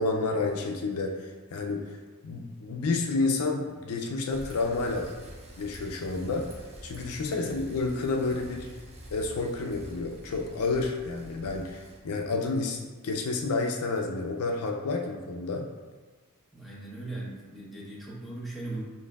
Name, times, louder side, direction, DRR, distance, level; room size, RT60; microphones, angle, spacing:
voice 1, 0.0-2.0 2.2-5.3 5.6-6.5 6.8-8.7 9.1-15.7, left 3 dB, 70° left, 2 dB, 0.4 m, -30 dB
Bicycle, 4.3-12.0, equal, 30° right, 0.7 m, -46 dB
voice 2, 16.5-18.8, right 2 dB, ahead, -6 dB, 0.9 m, -39 dB
6.9 x 2.6 x 2.3 m, 1.4 s
head